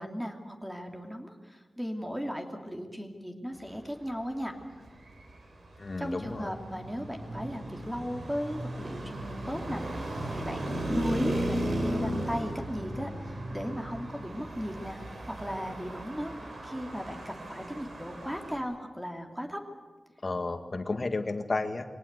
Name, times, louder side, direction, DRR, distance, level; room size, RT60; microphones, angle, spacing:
voice 1, 0.0-4.5 6.0-15.0 15.3-16.3 16.6-19.6, equal, 10° right, 3 dB, 2.8 m, -36 dB
Traffic noise roadway noise, 4.9-18.6, right 1 dB, 75° right, 4.2 m, -36 dB
voice 2, 5.8-6.5 20.2-21.9, left 3 dB, 45° left, 6 dB, 1.8 m, -32 dB
23.0 x 18.0 x 8.2 m, 1.3 s
wide cardioid pair, 65°, 0 cm